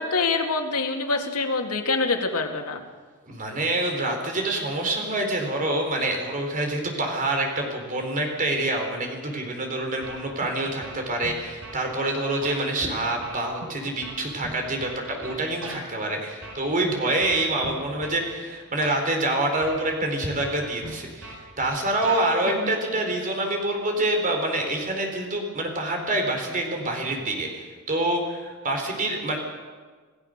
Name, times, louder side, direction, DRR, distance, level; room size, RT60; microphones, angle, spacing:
voice 1, 0.0-2.8 22.5-22.8, left 3 dB, 90° left, 3 dB, 2.4 m, -25 dB
voice 2, 3.3-29.4, right 1 dB, 40° right, 3 dB, 4.3 m, -26 dB
sound 1, 10.0-10.5 10.8-11.8 12.4-12.6 13.2-15.8 16.4-16.9 17.2-18.2 18.8-19.0 19.6-20.1 20.4-22.2, right 2 dB, 65° right, 6.4 m, -39 dB
28.0 x 16.0 x 6.7 m, 1.5 s
head